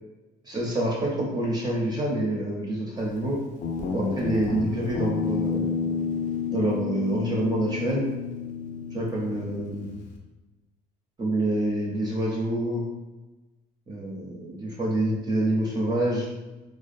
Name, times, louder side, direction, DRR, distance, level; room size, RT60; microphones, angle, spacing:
voice 1, 0.4-3.4 3.9-5.7 6.5-8.1 8.9-10.0 11.2-12.8 13.9-16.3, right 1 dB, 25° right, -4 dB, 0.5 m, -27 dB
Guitar, 3.6-10.2, left 5 dB, 50° left, 0.4 m, -30 dB
2.5 x 2.2 x 2.5 m, 1.1 s
cardioid pair, 110°, 17 cm